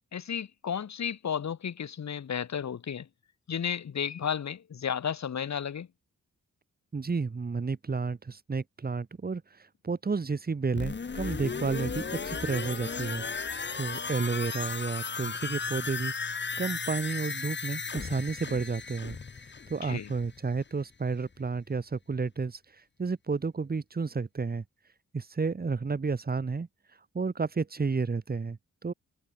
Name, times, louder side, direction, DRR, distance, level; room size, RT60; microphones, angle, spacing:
voice 1, 0.1-3.1 3.5-5.9 19.8-20.1, left 8 dB, 60° left, 2.7 m, -33 dB
voice 2, 6.9-9.4 9.8-16.1 16.6-19.2 19.7-22.6 23.0-24.6 25.1-26.7 27.1-28.9, right 4 dB, 30° right, 2.3 m, -31 dB
sound 1, 10.8-20.5 20.8-20.9, left 5 dB, 35° left, 2.8 m, -35 dB
wide cardioid pair, 155°, 32 cm